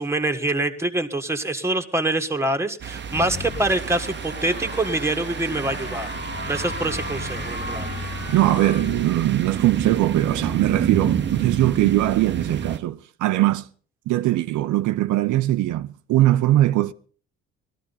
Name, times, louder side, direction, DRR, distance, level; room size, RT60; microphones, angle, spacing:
voice 1, 0.0-6.1 6.5-7.9, right 2 dB, 10° right, 1.4 m, -25 dB
sound 1, 2.8-12.8, right 7 dB, 40° right, 0.8 m, -30 dB
sound 2, 3.0-9.5, left 4 dB, 35° left, 2.0 m, -35 dB
voice 2, 8.3-13.7 14.1-16.9, right 15 dB, 80° right, 0.6 m, -21 dB
18.5 x 13.0 x 4.0 m
cardioid pair, 90°, 30 cm